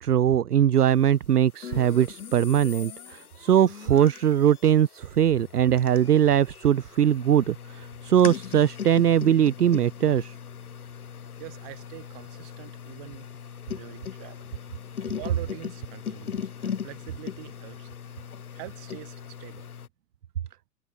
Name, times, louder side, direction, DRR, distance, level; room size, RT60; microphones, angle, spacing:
voice 1, 0.0-10.3, right 10 dB, 65° right, 0.8 m, -21 dB
sound 1, 1.6-19.9, left 7 dB, 60° left, 3.9 m, -39 dB
voice 2, 11.4-13.3 13.7-14.4 15.0-18.2 18.5-19.7, right 30 dB, 35° right, 7.7 m, -44 dB
figure-of-eight pair, 115°, 49 cm